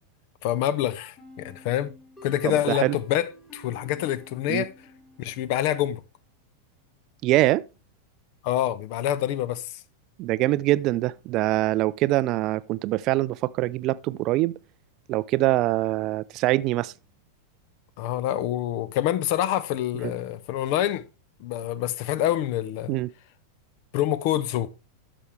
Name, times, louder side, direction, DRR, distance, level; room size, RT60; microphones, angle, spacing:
voice 1, 0.4-1.9 2.2-4.7 5.2-6.0 8.4-9.8 18.0-21.0 21.4-23.0 23.9-24.7, left 12 dB, 45° left, 0.7 m, -26 dB
sound 1, 1.2-5.8, equal, 15° left, 2.6 m, -50 dB
voice 2, 2.4-3.0 4.5-4.6 7.2-7.6 10.2-14.5 15.1-16.9 22.9-23.1, right 17 dB, 40° right, 0.4 m, -24 dB
12.5 x 6.1 x 3.2 m
figure-of-eight pair, 90°, 0 cm